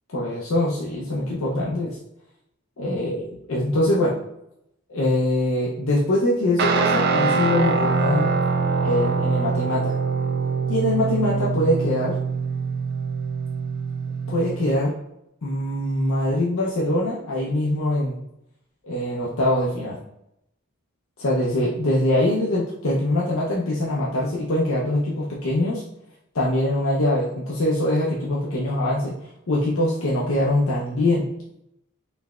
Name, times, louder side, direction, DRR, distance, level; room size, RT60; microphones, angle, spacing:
voice 1, 0.1-2.0 2.8-4.2 4.9-8.3 8.8-10.0 10.7-12.2 14.3-14.9 15.4-18.2 18.8-20.0 21.2-25.8 26.3-31.3, left 1 dB, 70° left, -5 dB, 0.6 m, -23 dB
Guitar, 6.6-14.7, right 4 dB, 50° right, 0.3 m, -24 dB
4.1 x 3.3 x 2.3 m, 0.82 s
head